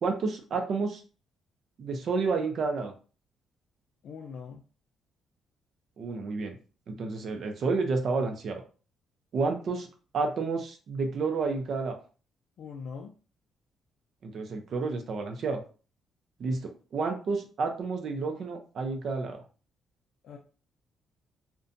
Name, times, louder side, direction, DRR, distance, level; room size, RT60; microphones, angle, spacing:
voice 1, 0.0-1.0 1.8-2.9 6.0-6.5 6.9-8.6 9.3-9.9 10.1-12.0 14.2-15.6 16.4-19.4, right 4 dB, 60° right, 4 dB, 0.6 m, -30 dB
voice 2, 4.0-4.6 12.6-13.1 20.2-20.4, left 5 dB, 70° left, 1 dB, 0.4 m, -41 dB
2.5 x 2.2 x 2.6 m, 0.37 s
cardioid pair, 90°, 0 cm